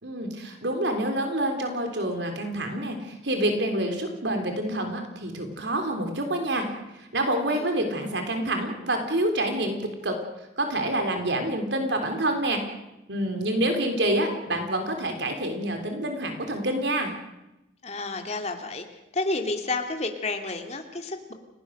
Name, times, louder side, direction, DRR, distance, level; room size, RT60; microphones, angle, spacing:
voice 1, 0.0-6.7 6.9-10.2 10.6-12.6 13.1-17.1, right 1 dB, 80° right, 5 dB, 3.8 m, -27 dB
voice 2, 17.8-18.8 19.1-21.3, left 2 dB, 40° left, 4 dB, 2.6 m, -30 dB
29.5 x 17.5 x 6.6 m, 0.93 s
head